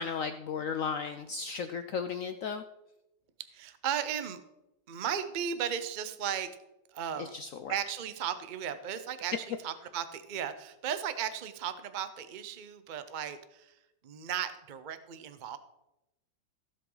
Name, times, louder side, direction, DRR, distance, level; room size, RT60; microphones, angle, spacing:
voice 1, 0.0-2.6 7.2-7.7, left 6 dB, 90° left, 9 dB, 0.7 m, -35 dB
voice 2, 3.5-4.4 4.9-6.5 6.9-7.3 7.7-15.6, right 8 dB, 80° right, 11 dB, 0.4 m, -36 dB
16.0 x 7.7 x 3.9 m, 0.92 s
omnidirectional pair, 2.1 m